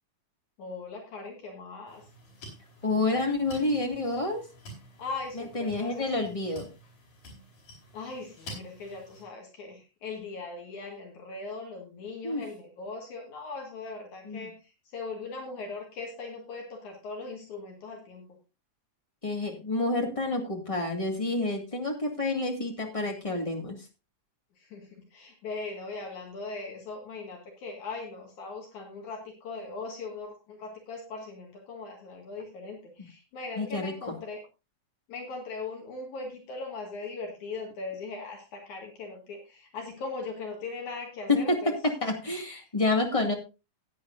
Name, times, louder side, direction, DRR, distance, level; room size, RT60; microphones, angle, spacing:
voice 1, 0.6-2.0 5.0-6.3 7.9-18.3 24.6-34.4 35.1-41.8, left 3 dB, 70° left, 1 dB, 3.3 m, -39 dB
sound 1, 1.9-9.2, equal, 85° left, 5.9 m, -49 dB
voice 2, 2.8-4.4 5.5-6.7 12.2-12.4 14.2-14.5 19.2-23.8 33.6-33.9 41.3-41.7 42.0-43.3, left 2 dB, 15° left, 2 dB, 1.5 m, -28 dB
16.0 x 9.6 x 2.6 m, 0.28 s
omnidirectional pair, 3.6 m